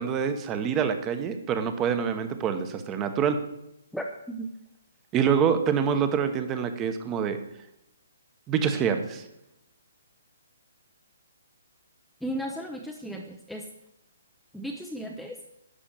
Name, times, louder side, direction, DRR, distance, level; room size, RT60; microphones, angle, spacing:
voice 1, 0.0-3.4 5.1-7.4 8.5-9.2, right 7 dB, 15° right, 9 dB, 1.1 m, -26 dB
voice 2, 3.9-4.5 12.2-13.7 14.5-15.4, right 1 dB, ahead, 0 dB, 0.7 m, -35 dB
11.5 x 6.2 x 8.8 m, 0.82 s
hypercardioid pair, 160°, 0 cm